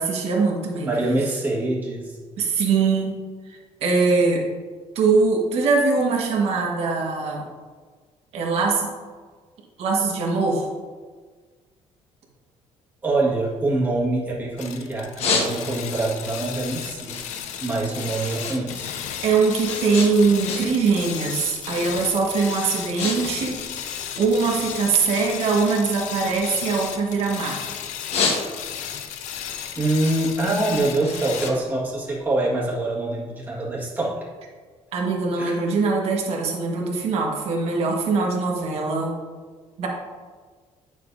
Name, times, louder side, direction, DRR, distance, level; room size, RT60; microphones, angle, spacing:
voice 1, 0.0-0.9 2.4-3.2 3.5-4.5 4.9-7.4 8.3-8.9 9.8-10.7 19.2-23.6 24.2-27.6 34.9-39.1 39.8-39.9, right 4 dB, 60° right, -1 dB, 1.5 m, -22 dB
voice 2, 0.8-2.2 13.0-17.2 17.6-18.9 29.8-34.3 35.4-35.6, right 2 dB, 15° right, -5 dB, 1.7 m, -25 dB
sound 1, 13.4-14.6 14.9-16.0 16.4-18.6 18.9-20.9 21.2-21.6 22.2-22.3 22.6-23.2 23.4-24.7 25.1-27.5 27.9-28.9 29.3-32.4, left 4 dB, 60° left, 1.2 m, -30 dB
sound 2, 14.6-31.5, left 9 dB, 90° left, 0.6 m, -34 dB
9.2 x 6.8 x 2.7 m, 1.5 s
cardioid pair, 160°, 12 cm